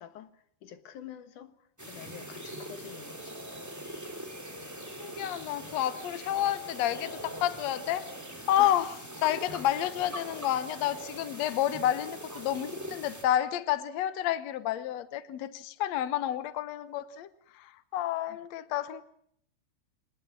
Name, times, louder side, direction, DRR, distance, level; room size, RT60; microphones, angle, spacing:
voice 1, 0.0-3.4 8.6-8.8 9.5-9.8 18.3-18.4, left 10 dB, 60° left, 2.5 m, -47 dB
sound 1, 1.8-13.2, right 1 dB, 5° right, 2.9 m, -42 dB
voice 2, 5.0-8.0 8.5-8.9 9.2-17.3 17.6-19.0, left 12 dB, 85° left, 1.5 m, -30 dB
25.0 x 19.5 x 7.5 m
omnidirectional pair, 4.8 m